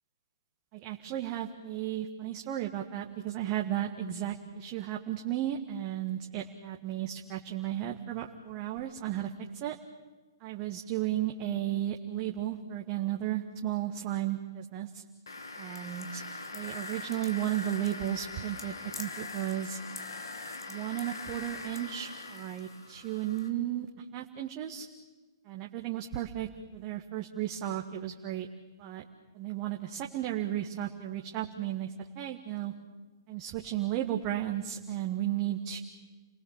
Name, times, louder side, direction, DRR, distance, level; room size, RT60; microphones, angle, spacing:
voice 1, 0.7-9.7 10.4-15.0 15.6-16.2 16.5-19.8 20.7-23.9 24.1-24.9 25.4-28.5 28.8-29.0 29.3-32.7 33.3-35.8, right 12 dB, 35° right, 2 dB, 1.8 m, -34 dB
sound 1, 15.3-23.5, left 3 dB, 80° left, 3.2 m, -42 dB
30.0 x 20.5 x 7.6 m, 1.2 s
figure-of-eight pair, 120°, 2 cm